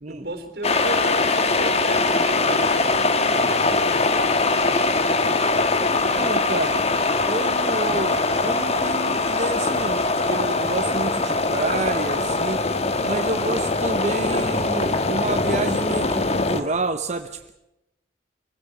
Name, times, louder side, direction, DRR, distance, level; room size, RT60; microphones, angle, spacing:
voice 1, 0.1-4.9, right 2 dB, 65° right, 6 dB, 3.7 m, -35 dB
sound 1, 0.6-16.6, left 3 dB, 35° left, 1.4 m, -22 dB
voice 2, 5.9-6.9 7.2-12.6 13.0-17.5, right 2 dB, 40° right, 8 dB, 0.9 m, -29 dB
24.5 x 16.5 x 8.2 m, 0.91 s
head